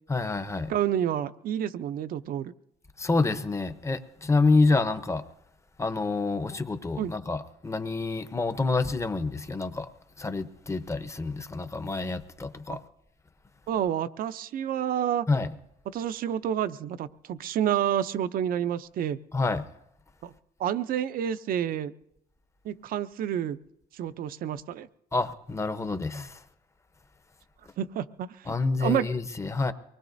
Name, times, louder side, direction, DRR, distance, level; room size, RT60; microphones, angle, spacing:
voice 1, 0.1-0.7 3.0-5.2 5.8-9.9 10.2-12.8 15.3-15.5 19.3-19.6 25.1-26.4 28.5-29.7, left 3 dB, 15° left, 0.8 m, -27 dB
voice 2, 0.7-2.5 7.0-7.1 12.7-12.8 13.7-15.3 15.9-19.2 20.2-20.3 20.6-21.9 22.6-23.6 23.9-24.9 27.8-29.1, right 10 dB, 60° right, 0.6 m, -29 dB
24.0 x 20.0 x 2.6 m
cardioid pair, 110°, 17 cm